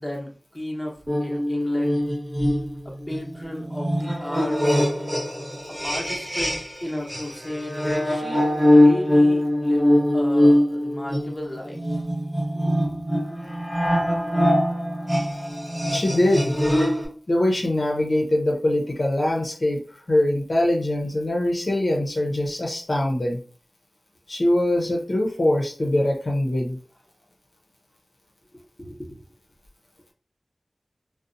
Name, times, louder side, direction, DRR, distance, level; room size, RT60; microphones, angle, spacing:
voice 1, 0.0-2.1 2.8-4.9 5.7-11.8 12.5-13.3 14.0-14.1 28.5-29.2, left 1 dB, 10° left, -1 dB, 0.8 m, -34 dB
sound 1, 1.1-6.8 7.1-17.1, left 1 dB, 10° right, 1.0 m, -22 dB
voice 2, 15.9-16.6 17.3-23.4 24.3-26.8, left 1 dB, 55° left, -1 dB, 0.6 m, -23 dB
2.6 x 2.0 x 2.5 m, 0.41 s
cardioid pair, 45°, 0 cm